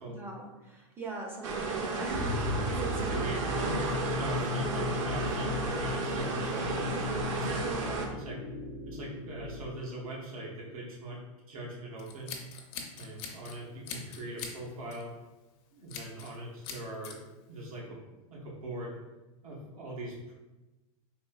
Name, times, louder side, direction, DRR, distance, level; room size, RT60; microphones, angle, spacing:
voice 1, 0.1-3.3, right 2 dB, 10° right, 0 dB, 0.4 m, -41 dB
sound 1, 1.4-8.1, right 3 dB, 60° right, 0.6 m, -33 dB
sound 2, 2.1-9.7, left 4 dB, 85° left, 0.6 m, -36 dB
voice 2, 3.1-3.8 4.1-6.7 7.3-8.4 8.8-11.2 11.5-12.4 12.9-15.1 15.7-17.2 17.5-18.0 18.3-19.0 19.4-20.4, right 1 dB, 90° right, -3 dB, 1.0 m, -41 dB
Scissors, 12.0-13.6 13.9-14.6 14.9-15.1 15.9-16.4 16.6-17.2, left 6 dB, 50° left, 0.6 m, -42 dB
3.9 x 2.6 x 2.3 m, 1.1 s
supercardioid pair, 140°, 18 cm